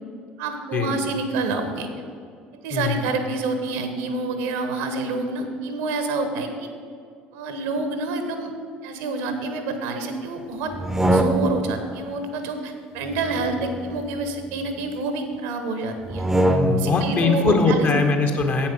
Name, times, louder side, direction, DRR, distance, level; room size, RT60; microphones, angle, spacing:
voice 1, 0.4-1.9 2.6-6.7 7.3-8.5 8.8-16.2 16.8-17.9, right 3 dB, 65° right, 7 dB, 1.0 m, -28 dB
voice 2, 2.7-3.1 16.5-18.7, left 4 dB, 40° left, 3 dB, 1.2 m, -21 dB
sound 1, 10.7-11.8 13.1-14.7 16.0-17.0, right 1 dB, 5° right, 0.8 m, -24 dB
8.6 x 7.2 x 5.3 m, 2.2 s
figure-of-eight pair, 55°, 5 cm